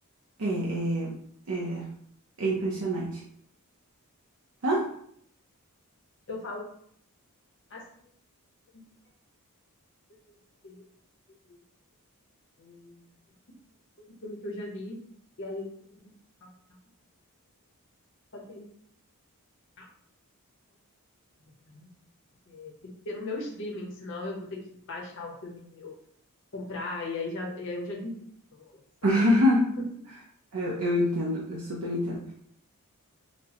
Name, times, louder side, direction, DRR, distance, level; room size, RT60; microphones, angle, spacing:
voice 1, 0.4-1.1 1.5-1.8 2.4-3.2 4.6-4.8 29.0-29.6 30.5-32.2, equal, 70° right, -4 dB, 0.7 m, -25 dB
voice 2, 6.3-6.6 7.7-7.8 8.7-8.8 10.3-10.4 10.6-10.8 11.5-11.6 12.6-13.1 14.2-15.0 15.4-15.9 16.4-16.5 18.3-18.7 19.8-19.9 21.7-21.9 22.5-24.5 24.9-25.9 26.5-28.1 28.5-29.4, left 2 dB, 60° left, -2 dB, 0.9 m, -38 dB
5.9 x 2.1 x 2.9 m, 0.65 s
head